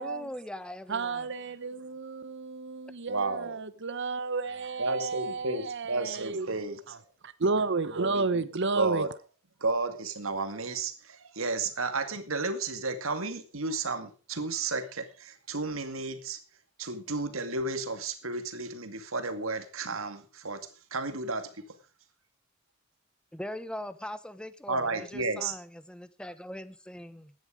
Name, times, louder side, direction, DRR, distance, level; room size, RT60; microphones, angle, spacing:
voice 1, 0.0-1.3 23.3-27.3, left 1 dB, 5° left, 1.0 m, -41 dB
voice 2, 0.9-6.5 7.4-9.0, right 3 dB, 60° right, 0.9 m, -31 dB
voice 3, 3.1-3.6 4.8-7.0 7.9-8.4 8.7-9.1 9.6-16.4 16.8-20.6 20.9-21.6 24.7-25.5, right 3 dB, 80° right, 2.1 m, -32 dB
16.0 x 10.5 x 5.0 m
head